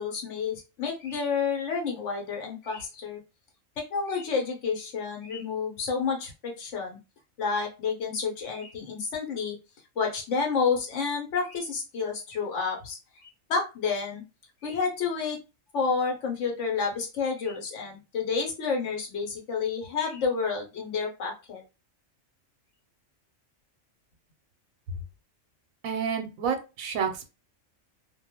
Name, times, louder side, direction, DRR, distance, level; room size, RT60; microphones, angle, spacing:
voice 1, 0.0-3.2 3.9-7.0 7.4-9.6 10.0-13.0 13.5-14.2 14.6-15.4 15.7-21.6, left 5 dB, 70° left, 2 dB, 1.0 m, -30 dB
voice 2, 25.8-27.3, right 6 dB, 90° right, 6 dB, 1.0 m, -29 dB
2.5 x 2.1 x 2.8 m, 0.29 s
omnidirectional pair, 1.4 m